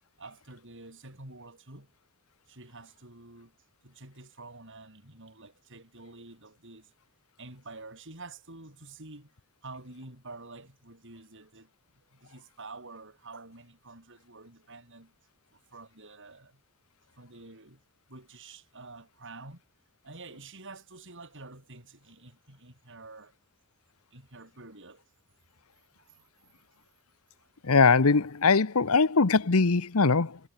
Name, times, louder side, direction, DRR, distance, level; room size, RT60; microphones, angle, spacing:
voice 1, 0.2-1.9 2.5-3.5 3.8-6.9 7.4-9.3 9.6-15.1 15.5-16.6 17.2-17.8 18.1-19.6 20.0-23.3 24.1-25.0 26.0-26.2 27.4-27.5, right 3 dB, 55° right, 7.4 m, -48 dB
voice 2, 27.6-30.4, left 4 dB, 75° left, 1.0 m, -22 dB
head